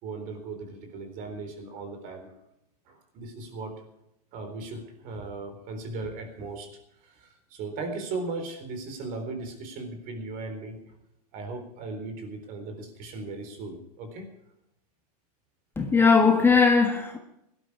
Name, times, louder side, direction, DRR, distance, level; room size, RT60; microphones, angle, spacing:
voice 1, 0.0-2.3 2.9-3.8 4.3-6.7 7.0-10.8 11.3-14.3, right 3 dB, 45° right, 3.9 m, -37 dB
voice 2, 15.8-17.2, left 5 dB, 10° left, 1.5 m, -19 dB
17.0 x 12.5 x 4.9 m
hypercardioid pair, 130°, 20 cm